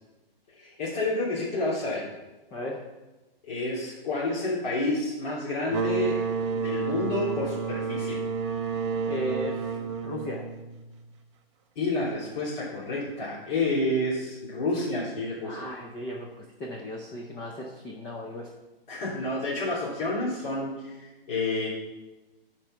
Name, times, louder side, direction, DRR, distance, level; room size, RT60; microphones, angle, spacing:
voice 1, 0.5-2.1 3.4-6.2 6.5-8.2 11.7-15.7 18.9-21.7, left 2 dB, 50° left, -8 dB, 3.3 m, -29 dB
voice 2, 2.5-2.8 9.1-10.4 15.4-18.5, left 1 dB, 10° left, 0 dB, 0.6 m, -36 dB
sound 1, 5.7-11.1, right 5 dB, 30° right, 0.6 m, -30 dB
11.5 x 4.6 x 5.8 m, 1.1 s
hypercardioid pair, 160°, 30 cm